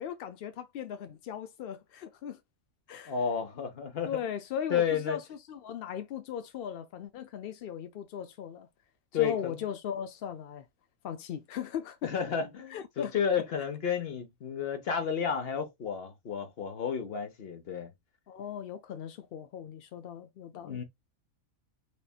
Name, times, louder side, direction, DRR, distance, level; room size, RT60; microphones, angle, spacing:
voice 1, 0.0-2.4 2.9-3.1 4.1-8.7 9.1-10.6 11.0-12.1 12.7-13.1 18.3-20.8, left 8 dB, 65° left, 0.5 m, -38 dB
voice 2, 3.1-4.1 4.7-5.2 9.1-9.6 12.0-17.9 20.6-20.8, left 7 dB, 50° left, 1.0 m, -31 dB
4.1 x 3.5 x 2.3 m
omnidirectional pair, 1.5 m